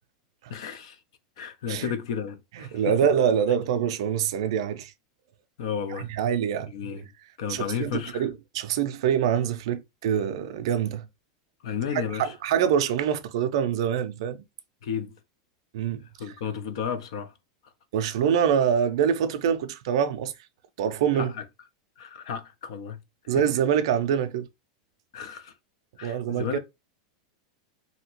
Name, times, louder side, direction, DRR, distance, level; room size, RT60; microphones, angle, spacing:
voice 1, 0.5-1.0 1.4-2.9 5.6-6.1 6.7-7.1 7.4-8.3 11.6-12.3 14.8-15.1 16.2-17.3 21.1-21.4 22.0-23.0 23.3-23.4 25.1-25.5 26.0-26.6, left 7 dB, 60° left, 0.6 m, -33 dB
voice 2, 2.6-4.9 6.2-6.7 7.5-11.1 11.9-14.4 15.7-16.0 17.9-20.3 20.8-21.3 23.3-24.5 26.0-26.6, right 8 dB, 55° right, 0.4 m, -25 dB
2.8 x 2.7 x 2.9 m
supercardioid pair, 180°, 3 cm